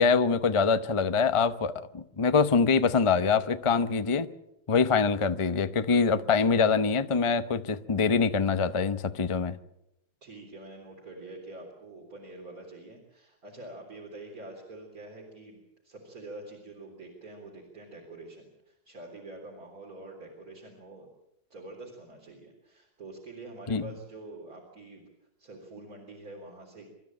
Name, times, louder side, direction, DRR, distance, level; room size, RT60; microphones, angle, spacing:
voice 1, 0.0-4.3 4.7-9.5 23.7-23.9, left 5 dB, 35° left, 0.5 m, -24 dB
voice 2, 10.2-21.1 21.5-25.0 25.4-26.9, right 2 dB, 50° right, 4.2 m, -46 dB
27.5 x 13.5 x 8.8 m
omnidirectional pair, 1.9 m